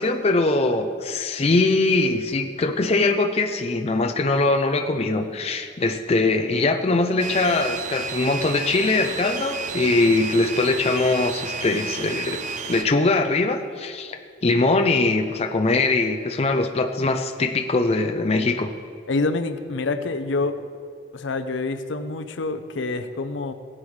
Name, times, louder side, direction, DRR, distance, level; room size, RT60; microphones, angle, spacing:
voice 1, 0.0-12.4 12.7-14.2 14.4-18.7, left 3 dB, 30° left, 5 dB, 0.5 m, -22 dB
sound 1, 7.2-12.8, right 4 dB, 40° right, 0.5 m, -32 dB
voice 2, 19.1-20.7 21.1-23.5, left 3 dB, 70° left, 8 dB, 0.6 m, -27 dB
17.5 x 8.8 x 3.2 m, 2.2 s
head